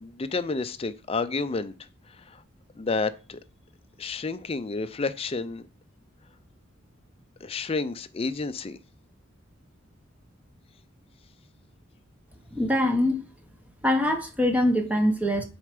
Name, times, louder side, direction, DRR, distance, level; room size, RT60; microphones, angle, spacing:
voice 1, 0.0-1.7 2.3-2.4 2.8-3.4 4.0-5.6 7.4-8.8, left 3 dB, 30° left, 0.5 m, -30 dB
voice 2, 12.5-13.2 13.8-15.4, left 1 dB, 5° right, 0.9 m, -23 dB
6.6 x 4.4 x 5.1 m
head